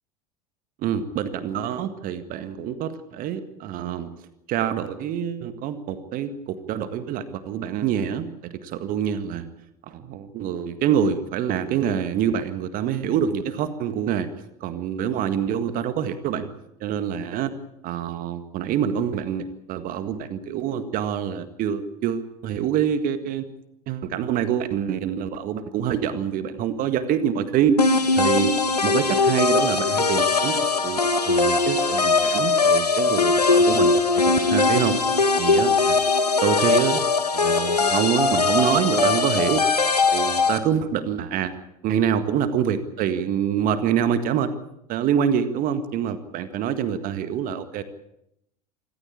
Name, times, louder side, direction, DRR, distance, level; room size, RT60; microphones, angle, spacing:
voice 1, 0.8-4.1 4.5-9.5 9.9-14.3 14.6-16.5 16.8-17.5 17.8-23.4 23.9-27.8 28.2-28.6 28.8-35.0 35.4-36.0 36.4-37.0 37.3-39.6 40.1-41.6 41.8-44.5 44.9-47.8, right 9 dB, 45° right, 11 dB, 1.8 m, -26 dB
sound 1, 27.8-40.6, left 4 dB, 90° left, 1.6 m, -20 dB
26.0 x 14.5 x 8.7 m, 0.81 s
figure-of-eight pair, 75°, 20 cm